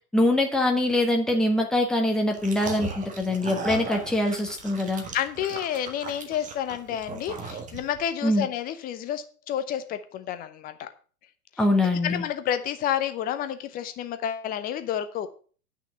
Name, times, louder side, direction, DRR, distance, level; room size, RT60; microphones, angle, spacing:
voice 1, 0.1-5.0 8.2-8.5 11.6-12.2, left 1 dB, ahead, 1 dB, 1.4 m, -23 dB
sound 1, 2.3-8.1, right 4 dB, 15° right, 1.5 m, -37 dB
voice 2, 5.1-10.9 11.8-15.3, left 10 dB, 20° left, 10 dB, 0.8 m, -30 dB
9.0 x 6.0 x 7.0 m, 0.41 s
figure-of-eight pair, 115°, 46 cm